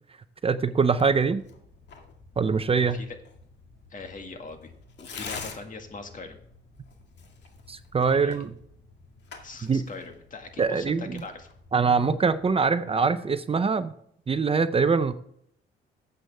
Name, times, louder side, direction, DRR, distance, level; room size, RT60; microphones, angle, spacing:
voice 1, 0.4-1.4 2.4-3.0 7.7-8.5 9.7-9.8 10.6-11.2 11.7-13.9 14.3-15.1, right 5 dB, 30° right, 12 dB, 0.6 m, -23 dB
Tearing, 0.9-12.4, left 5 dB, 60° left, 2.1 m, -47 dB
voice 2, 2.6-3.2 3.9-4.7 5.0-6.4 8.1-8.4 9.4-11.5, left 3 dB, 40° left, 5 dB, 1.9 m, -41 dB
13.0 x 8.0 x 3.5 m, 0.71 s
cardioid pair, 90°, 20 cm